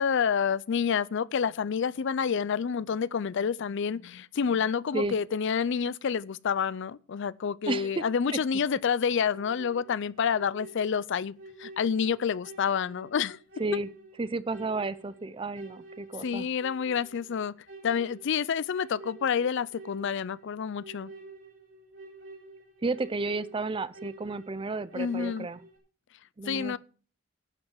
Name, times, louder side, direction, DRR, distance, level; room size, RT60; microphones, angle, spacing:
voice 1, 0.0-13.4 16.2-17.5 17.8-21.1 24.9-25.5 26.5-26.8, left 7 dB, 65° left, 0.4 m, -28 dB
voice 2, 7.7-8.0 8.3-8.4 13.6-13.9 14.2-16.5 22.8-25.6 26.4-26.8, right 3 dB, 25° right, 0.5 m, -32 dB
sound 1, 9.3-25.8, right 2 dB, 65° right, 3.6 m, -49 dB
11.5 x 5.4 x 7.4 m
head